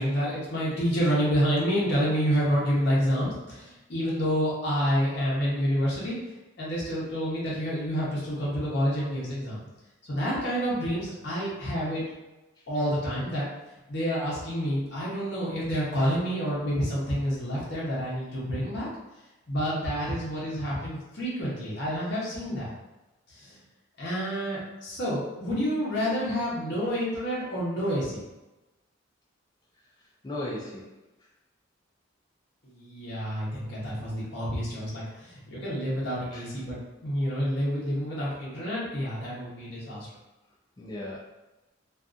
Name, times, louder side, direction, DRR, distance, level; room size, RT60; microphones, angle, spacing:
voice 1, 0.0-9.6 10.1-12.0 12.7-13.4 13.9-18.9 19.5-22.7 23.3-23.6 24.0-28.2 32.6-40.1, equal, 55° left, -8 dB, 0.8 m, -28 dB
voice 2, 30.2-31.0 36.3-36.5 40.8-41.2, left 1 dB, 20° left, -5 dB, 0.3 m, -36 dB
2.5 x 2.4 x 2.4 m, 1.0 s
head